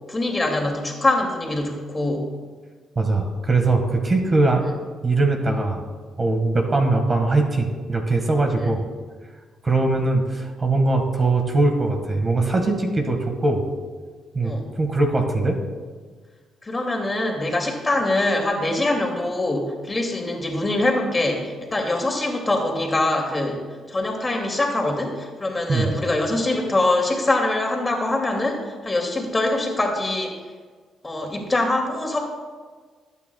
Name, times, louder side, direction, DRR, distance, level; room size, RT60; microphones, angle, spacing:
voice 1, 0.1-2.3 8.6-8.7 14.4-14.7 16.6-23.6 23.9-30.3 31.0-32.2, left 2 dB, 20° left, 1 dB, 2.5 m, -23 dB
voice 2, 2.9-4.8 5.0-5.8 6.2-8.8 9.6-13.6 14.3-15.6 25.7-25.9, right 2 dB, 30° right, 3 dB, 1.6 m, -21 dB
21.0 x 9.1 x 2.3 m, 1.5 s
cardioid pair, 90°, 0 cm